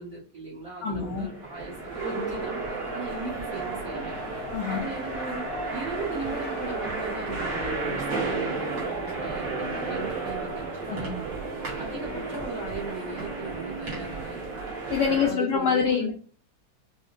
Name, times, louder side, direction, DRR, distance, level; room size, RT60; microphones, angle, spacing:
voice 1, 0.0-4.2 4.7-11.3 11.8-14.5 15.0-16.1, right 3 dB, 40° right, -7 dB, 1.3 m, -38 dB
Race car auto racing, 0.7-9.8, left 4 dB, 45° left, 0.7 m, -43 dB
voice 2, 0.8-1.3 4.5-4.8 10.9-11.2 14.9-16.1, left 6 dB, 75° left, -1 dB, 1.0 m, -25 dB
sound 1, 1.0-15.3, right 3 dB, 60° right, 1.7 m, -33 dB
4.6 x 2.1 x 2.4 m, 0.42 s
omnidirectional pair, 2.4 m